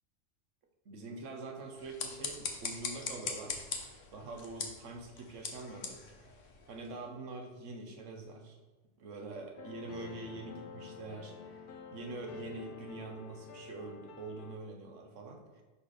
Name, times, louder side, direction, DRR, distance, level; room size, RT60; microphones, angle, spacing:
voice 1, 0.9-3.6 4.1-6.3 6.7-8.6 9.0-11.6 11.9-15.6, right 3 dB, 80° right, 3 dB, 1.2 m, -45 dB
sound 1, 1.7-7.0, left 5 dB, 85° left, 1.2 m, -42 dB
sound 2, 9.5-14.6, left 5 dB, 50° left, 0.8 m, -49 dB
5.2 x 4.3 x 4.8 m, 1.2 s
omnidirectional pair, 1.2 m